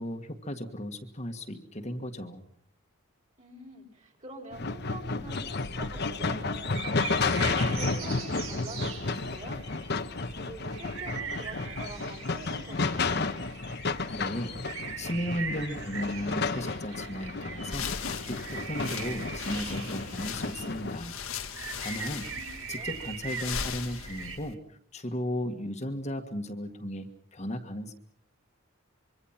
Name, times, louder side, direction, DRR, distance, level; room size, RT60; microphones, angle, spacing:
voice 1, 0.0-2.4 14.1-14.5 15.0-17.9 18.2-21.2 21.8-22.3 22.7-27.9, equal, 35° left, 4 dB, 1.6 m, -35 dB
voice 2, 3.4-6.8 7.1-9.6 10.4-13.2 22.1-23.0, right 2 dB, 35° right, 4 dB, 4.8 m, -46 dB
sound 1, 4.5-21.0, left 3 dB, 50° left, 1.2 m, -32 dB
sound 2, 5.4-24.4, right 5 dB, 75° right, 4.3 m, -41 dB
sound 3, 17.6-24.5, left 7 dB, 85° left, 2.0 m, -39 dB
26.0 x 24.0 x 5.8 m, 0.65 s
head